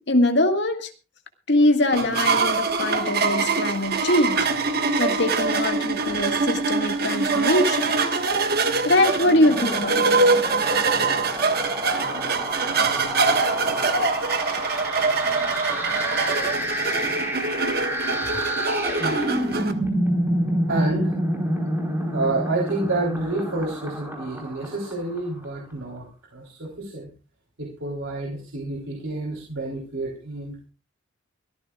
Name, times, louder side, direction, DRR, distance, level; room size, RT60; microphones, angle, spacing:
voice 1, 0.1-0.9 1.5-4.4 5.0-7.9 8.8-10.2, left 1 dB, 55° left, 5 dB, 1.9 m, -22 dB
sound 1, 1.9-19.7, right 4 dB, 50° right, 1.5 m, -23 dB
sound 2, 9.1-25.4, equal, 10° right, 4.2 m, -29 dB
voice 2, 19.0-19.3 20.7-21.2 22.1-26.1 26.3-27.1 27.6-30.6, right 2 dB, 75° right, -1 dB, 3.6 m, -29 dB
23.5 x 14.0 x 2.4 m, 0.32 s
head